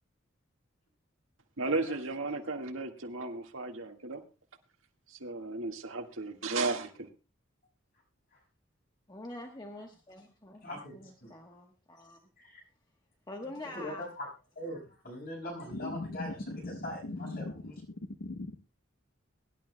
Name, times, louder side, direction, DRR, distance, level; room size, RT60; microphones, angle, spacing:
voice 1, 1.6-4.2 5.1-7.1, right 3 dB, 85° right, 1.7 m, -34 dB
voice 2, 9.1-12.2 13.3-14.1, left 2 dB, 20° left, 1.1 m, -45 dB
voice 3, 10.6-11.3 12.4-12.6 13.7-14.3 14.5-17.7, left 1 dB, 50° left, 6.1 m, -42 dB
voice 4, 15.7-17.5 17.9-18.6, left 2 dB, 85° left, 1.0 m, -39 dB
23.0 x 11.5 x 2.2 m
head